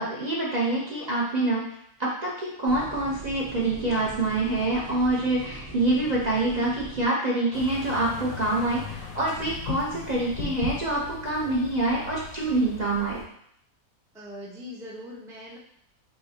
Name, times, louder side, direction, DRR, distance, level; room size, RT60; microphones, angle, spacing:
voice 1, 0.0-1.7 2.0-13.2, right 2 dB, 40° right, -5 dB, 0.7 m, -26 dB
sound 1, 2.7-7.1, right 1 dB, 80° right, 2.0 m, -42 dB
sound 2, 7.5-13.2, left 5 dB, 85° left, 1.3 m, -38 dB
voice 2, 14.1-15.6, left 1 dB, 5° right, -5 dB, 0.4 m, -41 dB
5.6 x 2.7 x 2.8 m, 0.70 s
omnidirectional pair, 1.5 m